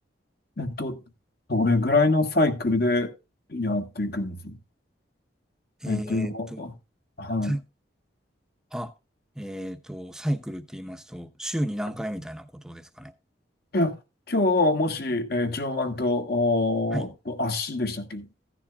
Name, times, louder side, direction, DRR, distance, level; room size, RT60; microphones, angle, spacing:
voice 1, 0.6-1.0 1.5-3.1 3.5-4.6 5.9-6.7 7.2-7.5 13.7-14.0 14.3-18.3, left 2 dB, 55° left, 1.4 m, -25 dB
voice 2, 5.8-6.6 7.4-7.6 8.7-8.9 9.4-13.1 16.9-17.1, equal, 5° right, 0.8 m, -33 dB
15.5 x 10.0 x 2.3 m
head